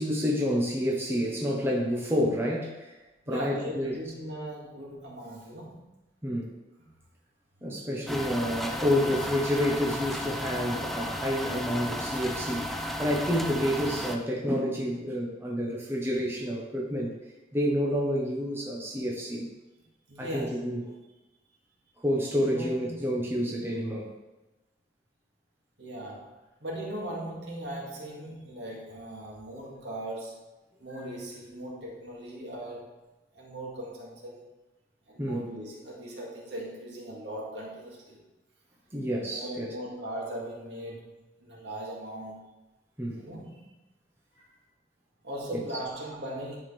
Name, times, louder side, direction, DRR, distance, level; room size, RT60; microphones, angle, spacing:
voice 1, 0.0-2.9 3.3-3.9 6.2-6.5 7.6-17.1 17.5-19.5 20.2-20.8 22.0-24.1 35.2-35.5 38.9-39.7 43.0-43.2 45.5-45.6, equal, 15° right, -3 dB, 1.1 m, -29 dB
voice 2, 3.3-5.9 6.8-6.9 20.1-20.7 22.5-23.0 25.8-30.5 30.8-33.0 33.3-34.5 35.1-38.2 39.3-42.4 43.2-43.7 44.4-44.5 45.2-46.6, right 1 dB, 75° right, -3 dB, 2.2 m, -39 dB
sound 1, 8.1-14.2, left 1 dB, ahead, 0.5 m, -34 dB
10.5 x 4.9 x 3.4 m, 1.0 s
head